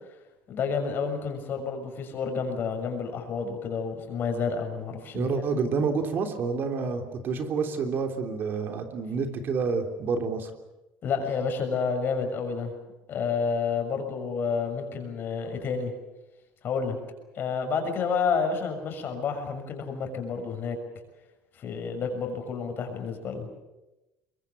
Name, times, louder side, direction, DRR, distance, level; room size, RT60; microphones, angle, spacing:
voice 1, 0.5-5.6 11.0-12.7 13.1-15.9 16.6-17.0 17.3-20.8 21.5-23.5, left 5 dB, 45° left, 5 dB, 6.4 m, -30 dB
voice 2, 5.1-10.5, right 5 dB, 45° right, 6 dB, 3.4 m, -28 dB
23.5 x 22.5 x 8.5 m, 1.0 s
supercardioid pair, 110°, 5 cm